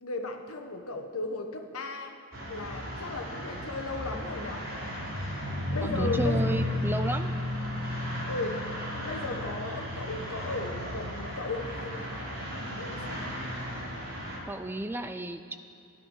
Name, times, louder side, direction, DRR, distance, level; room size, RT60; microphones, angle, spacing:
voice 1, 0.0-2.1 2.5-4.6 5.7-6.7 8.3-8.6 8.9-13.4, left 2 dB, 75° left, 5 dB, 1.2 m, -36 dB
sound 1, 2.3-14.4, left 1 dB, 70° right, 3.0 m, -34 dB
voice 2, 5.8-7.3 14.5-15.5, right 1 dB, 10° right, 8 dB, 0.3 m, -33 dB
13.5 x 10.5 x 5.6 m, 2.7 s
head